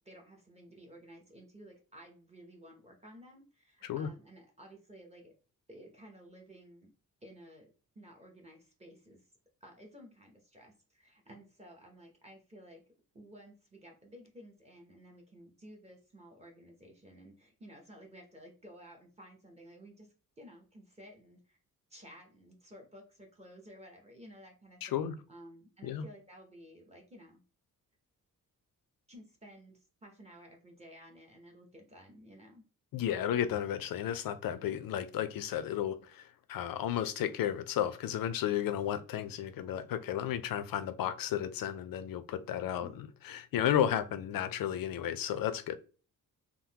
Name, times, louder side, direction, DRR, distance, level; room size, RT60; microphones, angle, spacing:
voice 1, 0.0-5.3 5.7-6.9 7.2-9.2 9.6-12.8 13.1-20.1 20.4-21.6 21.9-27.4 29.1-32.6 42.8-43.0, equal, 20° right, 0.6 m, -54 dB
voice 2, 24.8-25.1 25.8-26.0 32.9-45.8, left 10 dB, 80° left, 0.5 m, -33 dB
3.6 x 2.0 x 2.8 m
wide cardioid pair, 180°, 34 cm